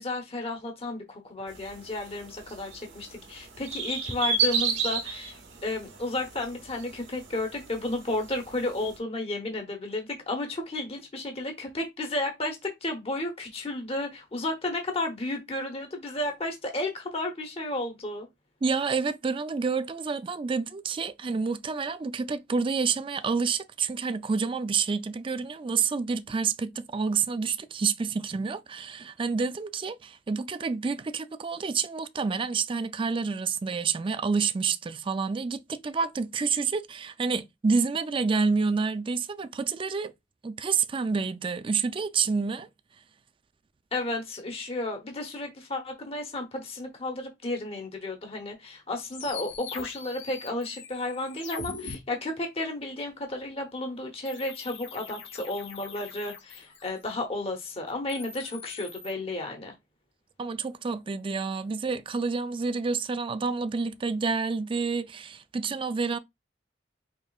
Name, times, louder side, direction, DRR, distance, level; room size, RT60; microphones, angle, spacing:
voice 1, 0.0-18.3 43.9-59.7, left 2 dB, 35° left, 0.9 m, -33 dB
sound 1, 1.5-9.0, right 5 dB, 80° right, 1.1 m, -33 dB
voice 2, 18.6-40.1 40.4-42.7 60.4-66.2, right 5 dB, 30° right, 0.3 m, -28 dB
sound 2, 49.1-52.0 54.3-57.1 57.9-59.1, left 5 dB, 85° left, 0.9 m, -42 dB
5.1 x 3.1 x 2.3 m
head